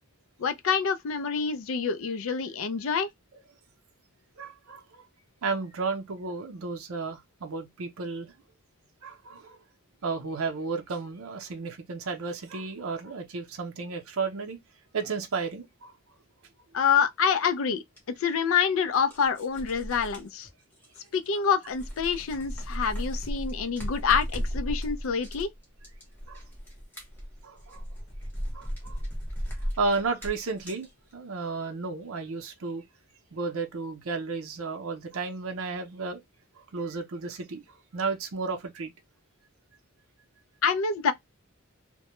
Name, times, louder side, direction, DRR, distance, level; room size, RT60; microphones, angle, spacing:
voice 1, 0.4-3.1 16.7-17.8 18.2-20.5 21.1-25.5 40.6-41.1, left 6 dB, 70° left, 0.4 m, -26 dB
voice 2, 4.4-5.0 5.4-8.3 9.0-9.6 10.0-14.6 14.9-15.9 26.3-26.4 27.4-27.8 28.5-29.0 29.8-30.9 31.1-32.8 33.3-36.2 36.7-37.6 37.9-38.9, right 4 dB, 75° right, 0.6 m, -33 dB
sound 1, 18.0-18.1 18.9-21.4 21.6-30.9, equal, 10° left, 0.8 m, -35 dB
2.1 x 2.1 x 2.9 m
head